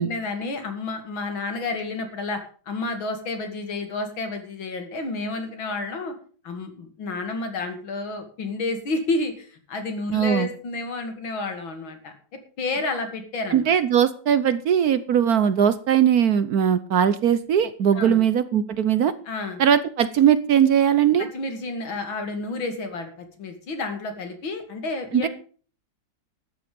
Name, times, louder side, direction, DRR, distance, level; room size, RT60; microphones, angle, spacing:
voice 1, 0.0-2.4 2.7-6.1 6.4-12.1 12.6-13.7 17.9-18.2 19.3-19.6 21.2-23.1 23.4-25.3, left 3 dB, 85° left, 6 dB, 3.1 m, -30 dB
voice 2, 10.1-10.5 13.5-19.1 19.6-21.3 25.1-25.3, right 9 dB, 60° right, 14 dB, 1.1 m, -20 dB
13.0 x 9.6 x 5.3 m, 0.41 s
omnidirectional pair, 2.1 m